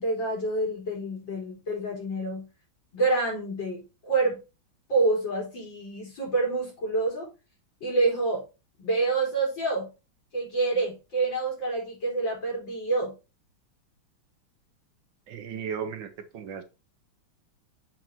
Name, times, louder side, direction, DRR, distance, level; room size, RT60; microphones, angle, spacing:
voice 1, 0.0-2.5 2.9-4.4 4.9-7.3 7.8-8.4 8.8-9.9 10.3-13.1, right 3 dB, 60° left, -3 dB, 5.0 m, -27 dB
voice 2, 15.3-16.1 16.3-16.6, right 7 dB, 70° right, 9 dB, 1.5 m, -35 dB
7.5 x 5.6 x 2.9 m, 0.28 s
omnidirectional pair, 2.3 m